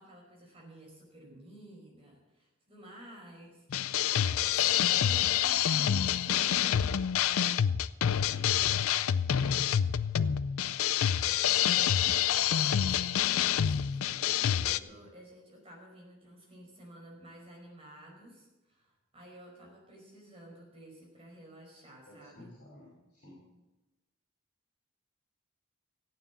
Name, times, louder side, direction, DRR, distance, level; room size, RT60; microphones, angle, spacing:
voice 1, 0.0-3.7 4.0-6.9 11.4-22.5, equal, 25° right, -1 dB, 5.0 m, -52 dB
sound 1, 3.7-14.8, left 9 dB, 85° left, 0.5 m, -27 dB
voice 2, 8.2-8.5 22.0-23.4, left 1 dB, 40° left, -5 dB, 5.2 m, -53 dB
15.0 x 9.3 x 7.1 m, 1.0 s
head